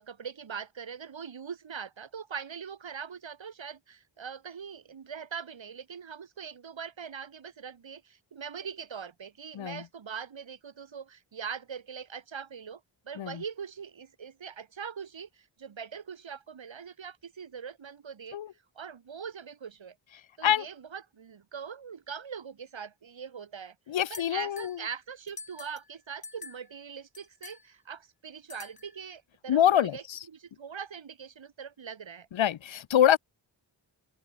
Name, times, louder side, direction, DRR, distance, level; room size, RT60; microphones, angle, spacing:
voice 1, 0.0-18.4 18.7-20.0 20.4-23.7 24.1-32.3, right 7 dB, 70° right, 1.8 m, -42 dB
voice 2, 23.9-24.8 29.5-30.2 32.3-33.2, left 10 dB, 70° left, 0.7 m, -25 dB
sound 1, 24.1-24.8 25.3-25.9 26.2-26.7 27.1-27.6 28.5-29.0, left 4 dB, 45° left, 5.0 m, -46 dB
open air
wide cardioid pair, 105°, 48 cm